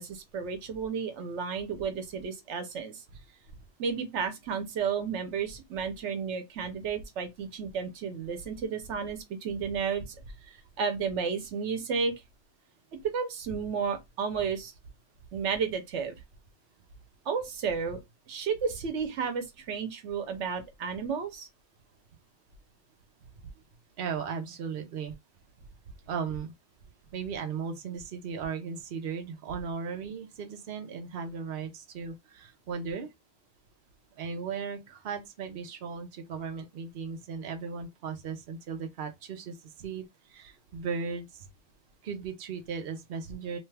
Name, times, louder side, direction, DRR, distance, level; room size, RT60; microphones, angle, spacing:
voice 1, 0.0-3.0 3.8-10.1 10.4-12.1 13.0-14.7 15.3-16.2 17.3-18.0 18.3-21.5, right 6 dB, 85° right, 1.0 m, -32 dB
voice 2, 24.0-25.1 26.1-26.5 27.1-33.1 34.2-41.5 42.0-43.6, right 6 dB, 60° right, 0.9 m, -36 dB
2.9 x 2.3 x 3.2 m
omnidirectional pair, 1.2 m